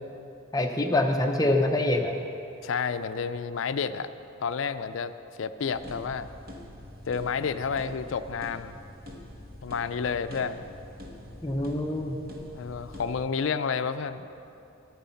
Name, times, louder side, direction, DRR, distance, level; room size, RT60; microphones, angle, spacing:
voice 1, 0.5-2.1 11.4-12.2, left 1 dB, 15° left, 3 dB, 0.6 m, -25 dB
voice 2, 2.6-4.1 4.4-6.3 7.1-8.8 9.6-10.6 12.5-14.3, left 6 dB, 70° left, 11 dB, 0.4 m, -30 dB
sound 1, 5.7-13.2, left 1 dB, 45° right, 1.4 m, -45 dB
10.5 x 9.7 x 5.7 m, 2.8 s
head